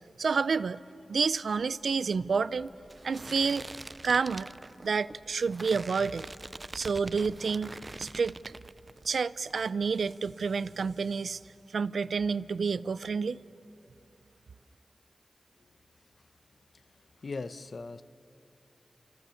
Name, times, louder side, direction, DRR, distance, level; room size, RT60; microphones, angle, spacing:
voice 1, 0.2-0.8 1.1-2.7 3.0-3.6 4.0-4.5 4.8-6.3 6.7-8.4 9.1-11.4 11.7-13.4, right 5 dB, 85° right, 0.6 m, -29 dB
sound 1, 1.5-9.2 9.5-10.2, right 2 dB, 35° right, 0.6 m, -45 dB
voice 2, 17.2-18.0, left 3 dB, 65° left, 0.9 m, -38 dB
29.5 x 27.5 x 7.1 m
cardioid pair, 60°, 0 cm